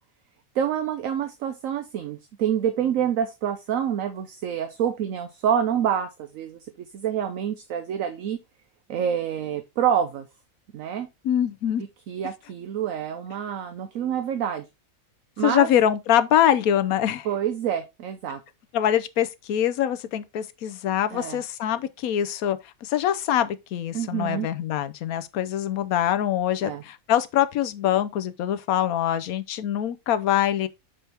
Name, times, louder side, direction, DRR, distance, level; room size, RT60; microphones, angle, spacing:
voice 1, 0.5-6.6 6.9-8.4 8.9-10.3 10.7-11.1 12.1-14.7 15.4-15.7 17.2-18.4 21.1-21.4 23.9-24.5 26.6-26.8, right 9 dB, 70° right, 1.1 m, -27 dB
voice 2, 11.2-11.8 15.4-17.3 18.7-30.7, left 11 dB, 85° left, 1.1 m, -24 dB
6.9 x 4.3 x 3.4 m
omnidirectional pair, 1.5 m